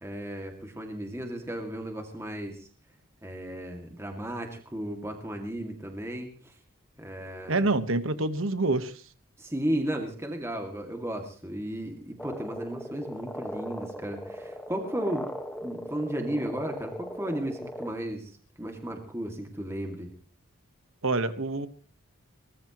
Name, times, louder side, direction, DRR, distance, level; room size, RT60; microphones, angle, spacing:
voice 1, 0.0-2.7 3.2-6.5 7.0-7.6 9.4-15.3 15.6-18.3 18.6-20.1, right 1 dB, 10° right, 3 dB, 2.3 m, -34 dB
voice 2, 7.5-9.0 21.0-21.7, right 2 dB, 65° right, 11 dB, 1.3 m, -26 dB
sound 1, 12.2-17.9, equal, 5° left, 1.5 m, -39 dB
23.0 x 20.0 x 3.1 m, 0.40 s
head